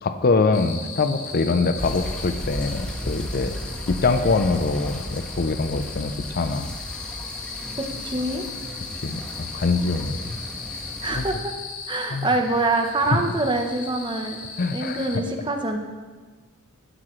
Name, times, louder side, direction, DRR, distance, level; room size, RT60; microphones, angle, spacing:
voice 1, 0.0-3.5 3.9-6.7 9.0-10.4 11.1-11.3 12.1-12.3 13.0-13.2 14.6-15.2, left 3 dB, 45° left, 10 dB, 0.5 m, -24 dB
sound 1, 0.5-15.2, left 5 dB, 70° left, 1.5 m, -38 dB
sound 2, 1.8-11.3, equal, 5° left, 1.2 m, -35 dB
voice 2, 7.8-8.4 11.0-11.5 11.9-14.4 14.7-15.8, right 2 dB, 20° right, 4 dB, 0.9 m, -25 dB
12.5 x 10.0 x 3.1 m, 1.3 s
head